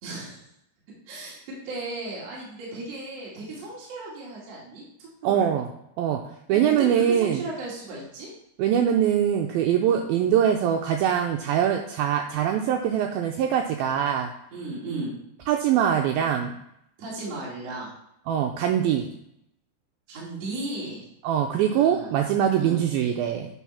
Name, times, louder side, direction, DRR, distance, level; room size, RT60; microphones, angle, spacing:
voice 1, 0.0-0.4 1.1-1.4 1.6-5.5 6.5-8.3 9.7-10.0 14.5-15.1 17.0-17.9 20.1-21.0 21.6-22.1 22.6-22.8, right 2 dB, 45° right, -6 dB, 3.0 m, -35 dB
voice 2, 5.2-5.7 6.0-6.2 6.5-7.4 8.6-14.3 15.5-16.5 18.3-19.1 21.2-23.5, right 9 dB, 90° right, 3 dB, 2.1 m, -23 dB
9.3 x 4.2 x 5.7 m, 0.78 s
omnidirectional pair, 4.8 m